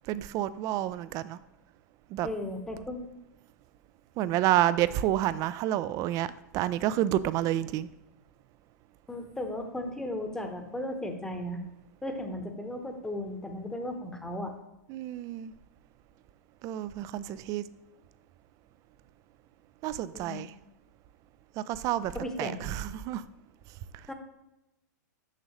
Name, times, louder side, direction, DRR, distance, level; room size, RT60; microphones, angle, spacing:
voice 1, 0.1-1.4 2.1-2.3 4.2-6.3 6.5-7.9 14.9-15.5 16.6-17.6 19.8-20.5 21.6-22.1 22.4-23.2, right 13 dB, 35° right, 0.3 m, -29 dB
voice 2, 2.2-3.1 9.1-11.6 12.0-14.5 20.1-20.4 22.1-22.8 24.1-24.2, left 1 dB, 5° left, 0.9 m, -36 dB
6.5 x 6.2 x 3.1 m
hypercardioid pair, 120°, 10 cm